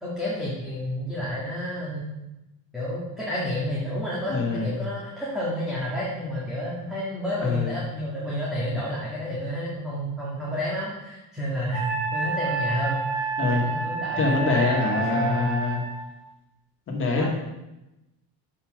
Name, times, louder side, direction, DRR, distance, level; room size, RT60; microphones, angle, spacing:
voice 1, 0.0-2.1 2.7-15.5 17.1-17.2, left 1 dB, ahead, -8 dB, 1.9 m, -30 dB
voice 2, 4.3-4.8 7.4-7.7 13.4-13.6 14.2-15.8 16.9-17.2, left 3 dB, 35° left, -1 dB, 2.2 m, -24 dB
Wind instrument woodwind instrument, 11.7-16.0, right 4 dB, 70° right, 1.4 m, -29 dB
7.0 x 5.4 x 6.3 m, 0.98 s
cardioid pair, 145°, 36 cm